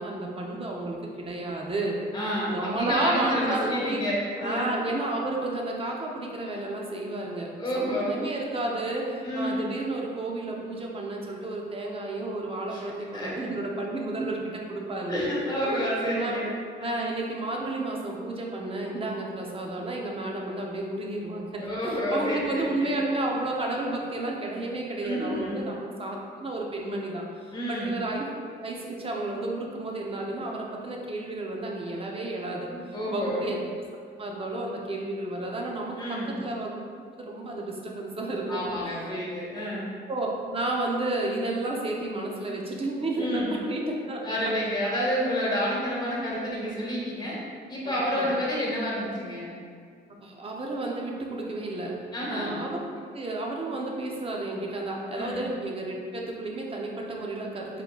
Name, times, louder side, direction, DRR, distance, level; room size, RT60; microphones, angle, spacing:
voice 1, 0.0-1.9 2.5-4.0 4.4-15.2 15.7-16.4 16.8-28.3 28.6-32.7 33.1-33.6 34.2-36.8 37.1-39.0 40.1-44.2 47.8-48.3 50.2-51.9 52.3-52.8 53.1-57.8, right 2 dB, 30° right, -1 dB, 0.7 m, -32 dB
voice 2, 2.1-4.8 7.6-8.2 9.2-9.6 12.7-13.3 15.1-16.5 16.8-17.0 21.6-22.9 25.0-25.7 27.5-27.9 32.7-33.5 36.0-36.4 38.5-39.9 43.2-43.6 44.2-47.4 47.7-49.5 52.1-52.5 55.1-55.4, equal, 20° left, -5 dB, 1.4 m, -29 dB
4.4 x 3.8 x 2.3 m, 2.1 s
cardioid pair, 90°, 20 cm